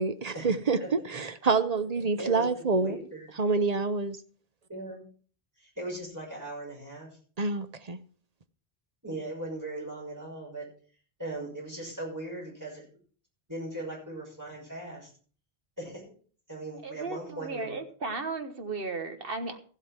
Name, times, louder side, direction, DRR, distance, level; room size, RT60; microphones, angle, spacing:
voice 1, 0.0-3.0 3.4-4.2 7.4-8.0, right 4 dB, 40° right, 0.8 m, -27 dB
voice 2, 2.2-3.4 4.7-5.0 5.6-7.1 9.0-10.7 11.2-12.8 13.5-15.1 15.8-16.2 16.5-17.8, right 1 dB, 15° right, 6.5 m, -39 dB
voice 3, 16.8-19.6, right 4 dB, 55° right, 1.6 m, -35 dB
15.0 x 8.3 x 4.4 m
omnidirectional pair, 1.1 m